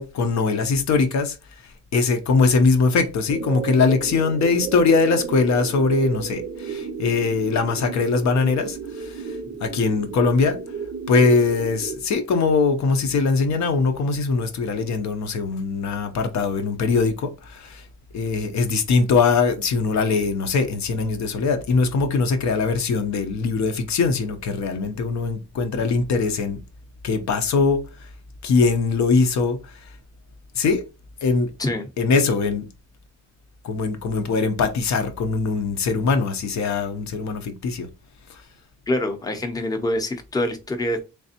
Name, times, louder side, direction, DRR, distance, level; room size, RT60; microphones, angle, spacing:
voice 1, 0.0-10.6 11.1-17.9 18.1-26.6 27.0-28.1 28.4-30.0 30.5-30.8 31.2-31.5 32.0-32.7 33.6-37.9 38.3-38.5, left 4 dB, 70° left, 0.7 m, -21 dB
sound 1, 3.3-12.0, right 6 dB, 50° right, 0.5 m, -33 dB
voice 2, 38.9-41.0, left 1 dB, 15° left, 0.6 m, -25 dB
3.4 x 3.2 x 2.8 m
cardioid pair, 125°, 29 cm